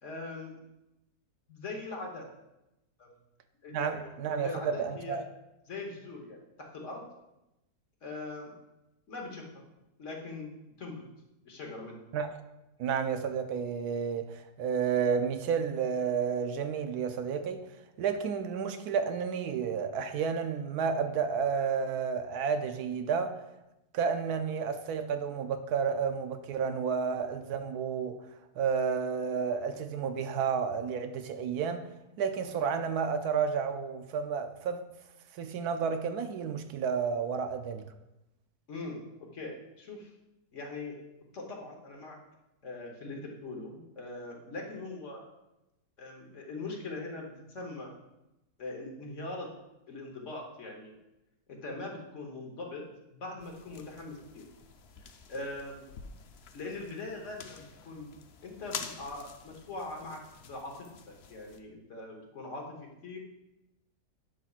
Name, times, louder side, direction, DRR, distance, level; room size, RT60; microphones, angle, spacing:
voice 1, 0.0-0.6 1.5-2.3 3.0-3.1 3.6-5.2 5.7-7.0 8.0-8.5 9.1-9.6 10.0-11.0 11.4-12.0 38.7-39.0 39.3-40.1 40.5-41.0 41.3-42.2 42.6-45.2 46.0-47.9 48.6-49.5 49.9-51.0 51.5-52.8 53.1-54.4 55.0-55.9 56.5-58.1 58.4-60.7 61.3-62.7 63.0-63.2, left 2 dB, 50° left, 1.4 m, -41 dB
voice 2, 3.7-5.2 12.1-12.3 12.8-17.6 18.0-23.4 23.9-28.2 28.6-31.9 32.2-34.8 35.3-37.9, right 6 dB, 75° right, 1.0 m, -31 dB
sound 1, 53.4-61.6, left 6 dB, 70° left, 0.6 m, -48 dB
11.0 x 5.8 x 2.4 m
omnidirectional pair, 1.7 m